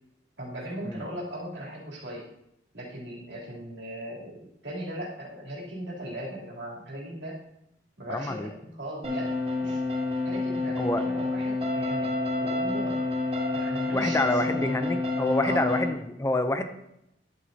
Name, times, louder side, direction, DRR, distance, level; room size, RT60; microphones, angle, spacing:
voice 1, 0.4-2.2 2.7-7.4 8.0-9.8 10.2-12.1 12.4-13.0 13.5-14.6 15.4-15.8, right 1 dB, 85° right, -4 dB, 3.1 m, -38 dB
voice 2, 8.1-8.5 10.8-11.0 13.9-16.7, left 1 dB, 15° left, 8 dB, 0.5 m, -27 dB
sound 1, 9.0-15.9, left 2 dB, 35° right, 3.1 m, -28 dB
11.0 x 8.0 x 2.7 m, 0.82 s
head